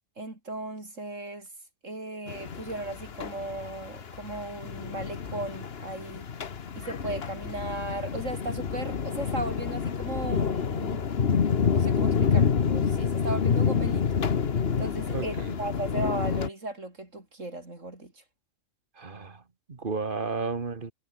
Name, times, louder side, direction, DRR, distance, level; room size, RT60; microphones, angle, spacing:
voice 1, 0.2-1.5 1.8-6.3 6.8-11.1 11.7-14.1 14.8-18.2, right 2 dB, 70° right, 5.7 m, -36 dB
sound 1, 2.3-16.5, left 6 dB, 50° left, 1.4 m, -28 dB
voice 2, 15.1-15.5 19.0-19.4 19.7-20.9, right 4 dB, 40° right, 1.8 m, -33 dB
omnidirectional pair, 1.3 m